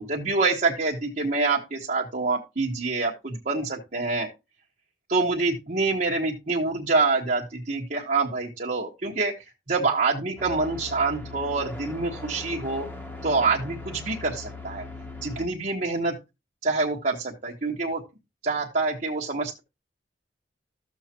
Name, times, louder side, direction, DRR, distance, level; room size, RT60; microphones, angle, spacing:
voice 1, 0.0-4.3 5.1-9.3 9.7-12.9 13.2-14.8 15.2-16.2 16.6-18.0 18.4-19.6, right 3 dB, 45° right, -3 dB, 1.2 m, -26 dB
sound 1, 10.4-15.5, left 3 dB, 10° left, 1.4 m, -39 dB
13.5 x 7.3 x 2.9 m, 0.26 s
head